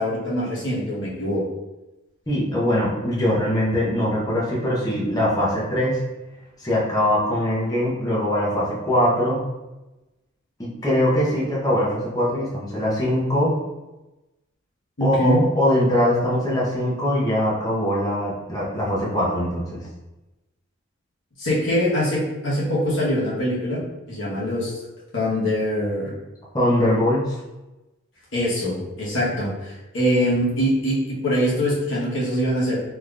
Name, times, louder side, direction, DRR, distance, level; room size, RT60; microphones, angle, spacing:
voice 1, 0.0-1.4 15.0-15.5 21.4-23.8 24.1-24.8 25.1-26.1 28.3-32.8, equal, 60° left, -7 dB, 1.2 m, -23 dB
voice 2, 2.3-6.0 6.6-9.4 10.6-13.5 15.0-19.8 26.5-27.4, left 1 dB, 20° left, -6 dB, 0.7 m, -22 dB
3.4 x 2.9 x 2.4 m, 1.0 s
head